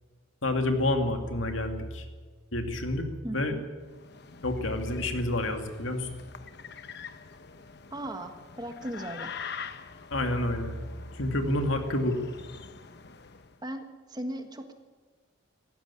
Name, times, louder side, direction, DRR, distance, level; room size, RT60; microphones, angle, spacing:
voice 1, 0.4-2.1 2.5-3.5 4.4-6.1 10.1-10.8 11.1-12.2, left 1 dB, 75° left, 5 dB, 2.4 m, -28 dB
voice 2, 3.2-3.6 7.9-9.3 13.6-14.7, right 1 dB, 20° right, 7 dB, 1.4 m, -37 dB
sound 1, 3.8-13.6, left 6 dB, 55° left, 1.0 m, -45 dB
18.0 x 14.5 x 9.9 m, 1.4 s
head